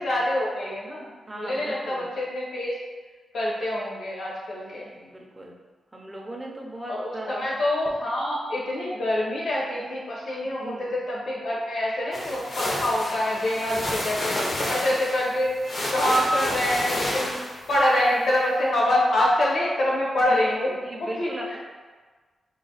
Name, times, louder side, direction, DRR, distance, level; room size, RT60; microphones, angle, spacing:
voice 1, 0.0-1.1 1.4-2.8 3.3-4.9 6.9-14.4 14.6-15.5 15.9-17.4 17.7-20.7 21.0-21.6, left 1 dB, 65° left, -4 dB, 1.0 m, -25 dB
voice 2, 1.3-2.1 4.5-5.6 5.9-7.5 10.4-10.9 14.0-14.1 14.4-14.9 18.1-18.3 20.3-21.6, right 1 dB, 15° right, -1 dB, 0.5 m, -38 dB
sound 1, 12.1-17.8, left 1 dB, 40° left, 0.6 m, -30 dB
4.1 x 2.2 x 3.8 m, 1.4 s
wide cardioid pair, 175°, 0 cm